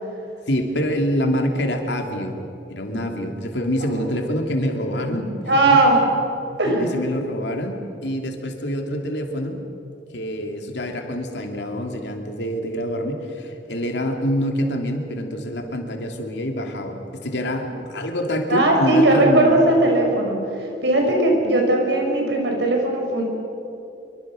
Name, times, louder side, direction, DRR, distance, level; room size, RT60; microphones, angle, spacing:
voice 1, 0.5-2.4 2.7-5.3 5.7-5.8 6.5-9.6 10.1-19.5, equal, 70° left, 3 dB, 2.9 m, -26 dB
voice 2, 5.1-6.0 6.6-6.9 18.5-23.2, right 1 dB, 70° right, 1 dB, 5.7 m, -18 dB
25.5 x 23.5 x 6.4 m, 2.8 s
head